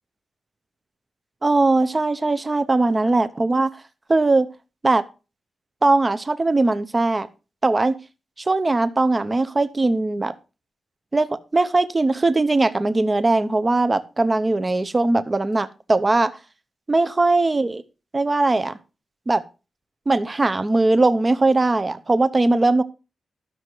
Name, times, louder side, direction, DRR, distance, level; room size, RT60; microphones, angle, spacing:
voice 1, 1.4-3.8 4.1-4.5 4.8-5.0 5.8-7.3 7.6-8.0 8.5-10.3 11.1-16.3 16.9-17.8 18.1-18.8 19.3-19.4 20.1-22.8, right 2 dB, 25° right, 13 dB, 0.7 m, -20 dB
12.5 x 6.6 x 4.5 m, 0.31 s
wide cardioid pair, 135°, 0 cm